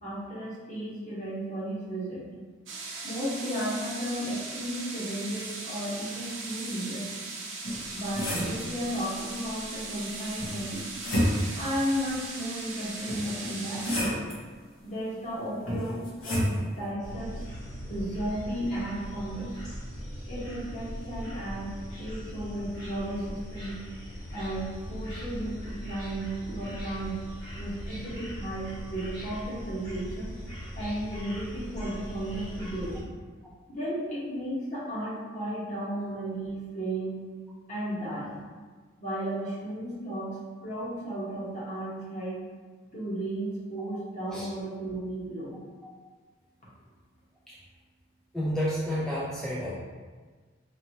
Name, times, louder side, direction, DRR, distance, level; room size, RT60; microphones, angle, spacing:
voice 1, 0.0-2.2 3.0-7.1 7.9-10.8 11.5-13.9 14.8-17.4 17.9-19.5 20.3-23.8 24.3-27.2 27.5-30.3 30.7-33.0 33.7-37.3 37.7-38.4 39.0-42.4 42.9-45.6, right 1 dB, 40° left, -8 dB, 1.3 m, -34 dB
sound 1, 2.7-14.0, right 3 dB, 70° right, 0.8 m, -39 dB
sound 2, 7.6-8.7 10.4-11.6 13.1-14.4 15.7-16.6, equal, 80° left, 1.1 m, -29 dB
sound 3, 17.0-33.0, equal, 20° left, 1.1 m, -40 dB
voice 2, 48.3-49.7, equal, ahead, -8 dB, 0.4 m, -30 dB
4.4 x 2.7 x 2.9 m, 1.5 s
head